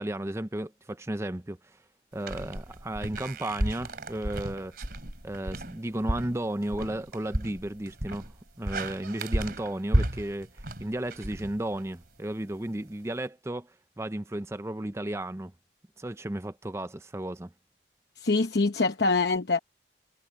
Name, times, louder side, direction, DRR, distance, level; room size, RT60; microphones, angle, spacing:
voice 1, 0.0-1.8 2.1-4.8 5.2-8.3 8.6-15.5 16.0-17.5, right 1 dB, 15° right, 0.6 m, -34 dB
sound 1, 2.2-12.1, right 1 dB, 55° right, 3.1 m, -33 dB
voice 2, 18.2-19.6, left 3 dB, 60° left, 0.9 m, -24 dB
head